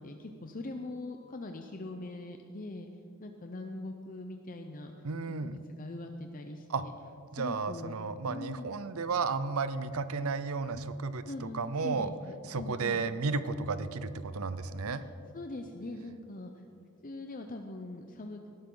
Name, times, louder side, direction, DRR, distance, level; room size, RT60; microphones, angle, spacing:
voice 1, 0.0-2.9 3.2-4.9 5.4-6.9 7.4-7.9 8.3-8.8 11.3-13.0 14.9-15.0 15.3-16.6 17.0-18.5, left 2 dB, 40° left, 4 dB, 0.7 m, -42 dB
voice 2, 5.0-5.6 6.7-6.8 7.3-12.1 12.5-15.0, right 4 dB, 75° right, 13 dB, 0.7 m, -33 dB
18.5 x 12.0 x 3.9 m, 2.6 s
head